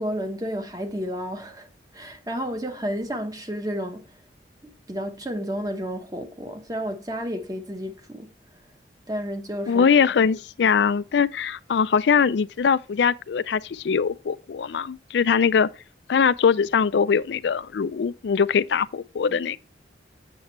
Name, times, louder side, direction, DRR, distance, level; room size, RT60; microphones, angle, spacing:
voice 1, 0.0-1.7 1.9-4.1 4.6-8.3 9.1-9.8 19.3-19.4, equal, 20° right, 1.0 m, -31 dB
voice 2, 9.7-15.7 16.1-19.6, left 6 dB, 75° left, 0.4 m, -22 dB
8.0 x 7.0 x 3.1 m
head